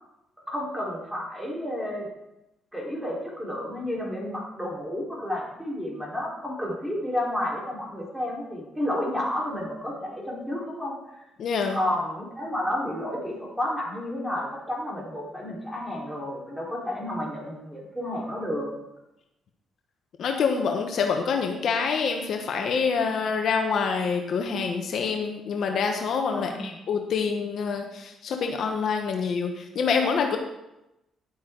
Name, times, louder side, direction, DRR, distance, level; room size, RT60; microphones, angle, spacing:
voice 1, 0.5-2.1 2.7-11.0 11.7-18.7 26.3-26.7, left 1 dB, 5° right, -4 dB, 4.3 m, -31 dB
voice 2, 11.4-11.8 20.2-30.4, left 5 dB, 65° left, 3 dB, 1.1 m, -26 dB
11.0 x 8.4 x 3.9 m, 0.90 s
cardioid pair, 90°, 0 cm